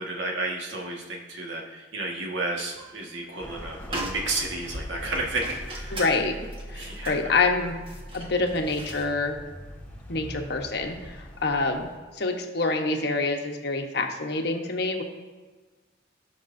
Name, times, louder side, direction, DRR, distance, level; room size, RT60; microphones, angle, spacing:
voice 1, 0.0-6.0 6.7-7.1, right 2 dB, 90° right, -1 dB, 1.7 m, -32 dB
sound 1, 2.6-3.1 3.4-3.5 3.8-9.1, right 1 dB, 30° right, 1.5 m, -39 dB
sound 2, 3.4-12.0, equal, 10° left, 1.3 m, -42 dB
voice 2, 5.9-6.3 6.7-7.7 8.1-9.4 10.1-11.9 12.1-15.0, left 3 dB, 65° left, 3 dB, 1.1 m, -26 dB
18.0 x 6.0 x 2.7 m, 1.4 s
head